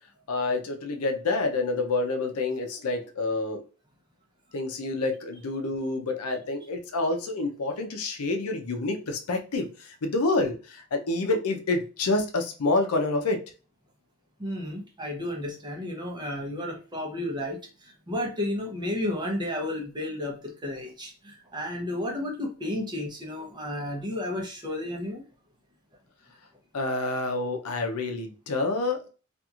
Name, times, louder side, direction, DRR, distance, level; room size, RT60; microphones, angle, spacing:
voice 1, 0.3-3.6 4.5-13.4 26.7-29.1, left 2 dB, 90° left, 0.6 m, -28 dB
voice 2, 14.4-25.2, left 1 dB, 20° right, 0.7 m, -32 dB
2.9 x 2.5 x 2.4 m
head